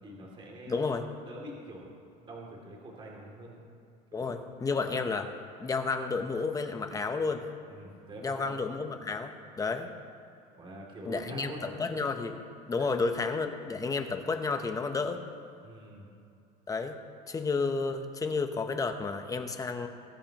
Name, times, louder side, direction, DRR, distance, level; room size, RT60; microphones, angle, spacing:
voice 1, 0.0-0.9 1.2-1.9 2.2-3.6 4.1-4.3 7.7-8.5 10.5-11.7 12.7-13.0 15.6-16.1, right 1 dB, 25° right, -2 dB, 2.8 m, -45 dB
voice 2, 0.7-1.1 4.1-5.3 5.6-7.4 8.2-9.9 11.0-12.4 12.7-15.2 16.7-16.9 17.3-19.9, left 4 dB, 15° left, 7 dB, 0.9 m, -31 dB
21.0 x 11.0 x 3.0 m, 2.5 s
supercardioid pair, 135°, 20 cm